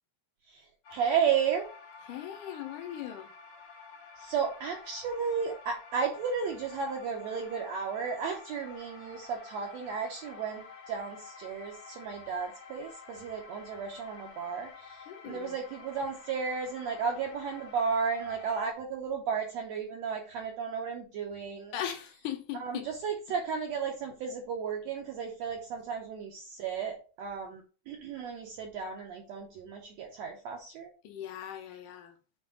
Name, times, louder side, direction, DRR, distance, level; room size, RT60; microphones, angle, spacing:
voice 1, 0.5-1.7 4.2-21.7 22.6-30.9, right 6 dB, 75° right, 1.6 m, -34 dB
sound 1, 0.8-18.7, left 5 dB, 55° left, 1.3 m, -50 dB
voice 2, 2.0-3.3 15.1-15.6 21.7-22.9 31.0-32.2, left 10 dB, 75° left, 2.1 m, -39 dB
7.8 x 2.9 x 4.8 m
omnidirectional pair, 3.9 m